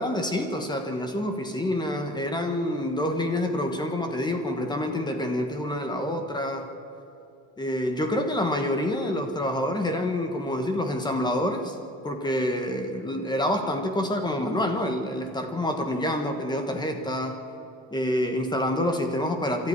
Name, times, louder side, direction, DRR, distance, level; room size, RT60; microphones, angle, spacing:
voice 1, 0.0-6.7 7.6-11.8 12.0-17.4 17.9-19.7, left 1 dB, 10° left, 5 dB, 1.2 m, -27 dB
26.0 x 13.0 x 9.7 m, 2.8 s
cardioid pair, 175°, 43 cm